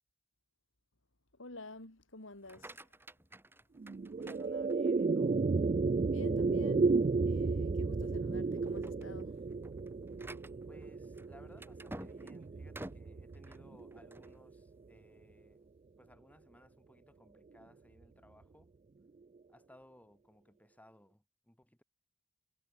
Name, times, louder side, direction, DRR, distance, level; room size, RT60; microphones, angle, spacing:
voice 1, 1.3-2.9 6.1-7.0 7.2-9.4, left 2 dB, 70° left, 3.4 m, -49 dB
sound 1, 2.3-5.1 5.6-6.1 6.5-6.6 7.1-7.2 7.9-8.2 8.5-14.4, right 1 dB, 10° right, 1.7 m, -52 dB
sound 2, 3.8-14.3, right 4 dB, 30° right, 0.4 m, -33 dB
voice 2, 4.2-5.4 10.7-15.7 16.0-18.7 19.5-21.8, left 1 dB, 10° left, 4.7 m, -61 dB
head